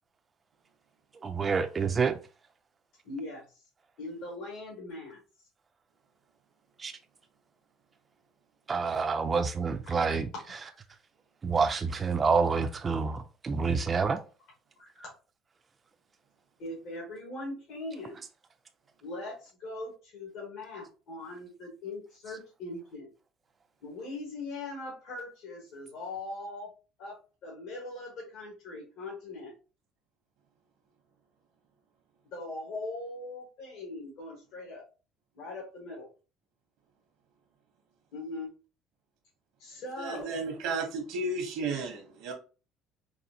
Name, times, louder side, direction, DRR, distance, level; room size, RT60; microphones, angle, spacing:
voice 1, 1.2-2.2 6.8-6.9 8.7-10.3 11.4-14.2, right 5 dB, 25° right, 0.4 m, -27 dB
voice 2, 3.0-3.4 4.0-5.2 9.2-9.3 9.8-10.0 14.8-15.1 16.6-18.2 19.0-23.1 23.8-26.7 27.0-29.5 32.3-34.8 35.3-36.1 38.1-38.5 39.6-40.3, left 2 dB, 70° left, 1.4 m, -40 dB
voice 3, 40.0-42.3, right 3 dB, 75° right, 1.0 m, -33 dB
4.1 x 2.5 x 2.8 m
cardioid pair, 135°, 0 cm